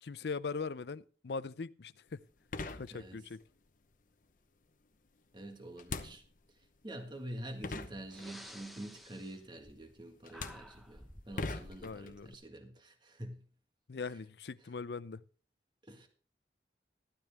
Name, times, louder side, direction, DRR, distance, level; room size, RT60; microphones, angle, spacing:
voice 1, 0.0-2.2 2.7-3.4 11.8-12.3 13.9-15.2, left 4 dB, 70° left, 0.5 m, -40 dB
sound 1, 2.1-2.2 2.5-3.4 5.8-6.6 7.3-7.4 7.6-8.6 9.6-9.9 10.2-12.3, left 3 dB, 50° left, 0.9 m, -42 dB
voice 2, 2.9-3.2 5.3-6.2 6.8-13.4 13.9-14.0 15.9-16.1, right 1 dB, 25° right, 1.8 m, -47 dB
Breathing, 8.0-10.0 10.3-11.4, equal, ahead, 0.8 m, -53 dB
14.0 x 12.5 x 3.5 m
head